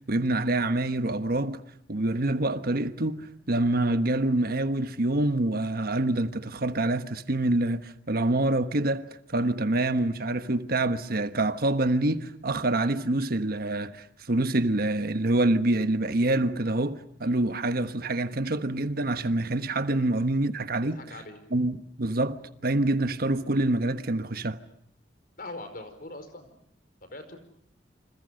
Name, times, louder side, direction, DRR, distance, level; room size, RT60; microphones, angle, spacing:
voice 1, 0.0-1.6 1.9-9.0 9.3-21.0 21.5-24.6, right 2 dB, 55° right, 1.3 m, -26 dB
voice 2, 20.8-21.4 25.4-26.6 27.1-27.4, left 2 dB, 55° left, 4.9 m, -41 dB
29.0 x 27.0 x 6.5 m
head